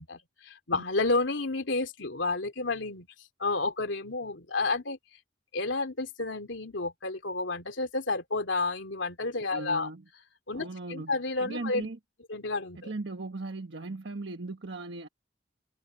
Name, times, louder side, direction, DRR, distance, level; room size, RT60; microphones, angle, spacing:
voice 1, 0.0-3.1 3.4-5.0 5.5-9.9 10.5-11.9 12.3-12.9, left 3 dB, 85° left, 2.8 m, -31 dB
voice 2, 9.5-10.0 10.5-11.1 11.4-12.0 12.8-15.1, right 2 dB, 75° right, 1.2 m, -38 dB
head